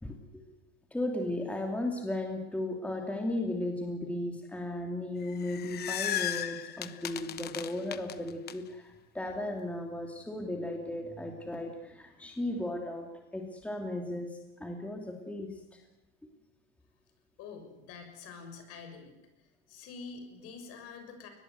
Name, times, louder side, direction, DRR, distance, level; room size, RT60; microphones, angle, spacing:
voice 1, 0.0-0.4 0.9-15.8, left 1 dB, 5° left, 2 dB, 2.8 m, -36 dB
sound 1, 5.2-8.5, left 11 dB, 30° left, 1.0 m, -36 dB
voice 2, 17.4-19.1 19.7-21.3, left 5 dB, 50° left, 6 dB, 6.5 m, -46 dB
22.5 x 20.0 x 8.1 m, 0.97 s
supercardioid pair, 135°, 30 cm